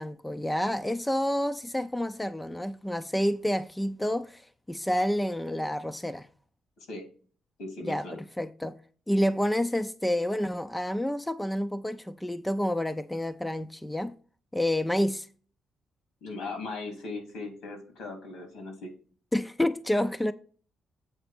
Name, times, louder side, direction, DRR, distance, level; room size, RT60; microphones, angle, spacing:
voice 1, 0.0-6.3 7.8-8.8 9.1-14.2 14.5-15.3 19.3-20.3, left 1 dB, 10° left, 0.5 m, -29 dB
voice 2, 7.6-8.2 16.2-18.9, left 3 dB, 80° left, 3.3 m, -38 dB
8.0 x 4.2 x 6.1 m
cardioid pair, 90°, 0 cm